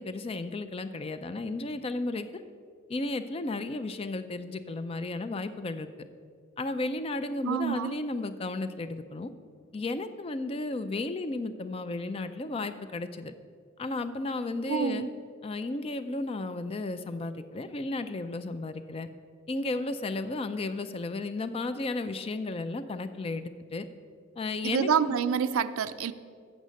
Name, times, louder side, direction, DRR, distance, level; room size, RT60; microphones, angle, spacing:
voice 1, 0.0-2.4 2.9-5.9 6.6-9.3 9.7-13.3 13.8-15.1 15.4-19.1 19.5-23.9 24.4-25.2, left 2 dB, 25° left, 11 dB, 0.3 m, -33 dB
voice 2, 7.4-7.9 14.7-15.1 24.6-26.1, right 7 dB, 75° right, 13 dB, 0.4 m, -27 dB
8.0 x 6.4 x 6.3 m, 2.2 s
head